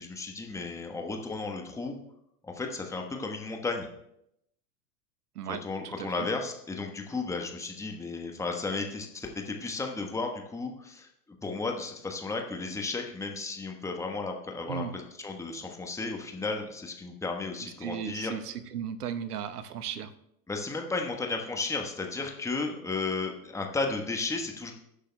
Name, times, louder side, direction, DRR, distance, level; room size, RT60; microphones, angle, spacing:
voice 1, 0.0-2.0 2.4-3.9 5.5-11.1 11.4-18.3 20.5-24.7, left 3 dB, 5° left, 3 dB, 1.2 m, -34 dB
voice 2, 5.3-6.3 14.7-14.9 17.6-20.1, right 8 dB, 65° right, 12 dB, 1.0 m, -36 dB
19.5 x 10.0 x 2.3 m, 0.78 s
figure-of-eight pair, 100°, 49 cm